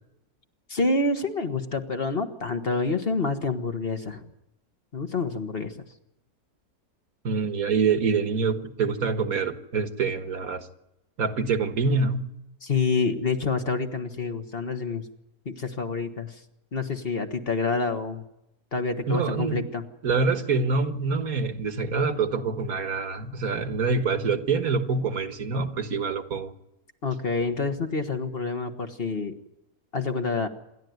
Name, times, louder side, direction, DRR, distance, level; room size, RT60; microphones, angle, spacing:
voice 1, 0.7-4.2 4.9-5.7 12.6-15.0 15.4-16.4 16.7-18.2 18.7-19.8 27.0-29.4 29.9-30.5, left 4 dB, 40° left, 1.6 m, -27 dB
voice 2, 7.2-10.7 11.2-12.3 19.1-19.6 20.0-26.5, right 4 dB, 65° right, 2.0 m, -26 dB
27.5 x 12.0 x 9.4 m
omnidirectional pair, 1.6 m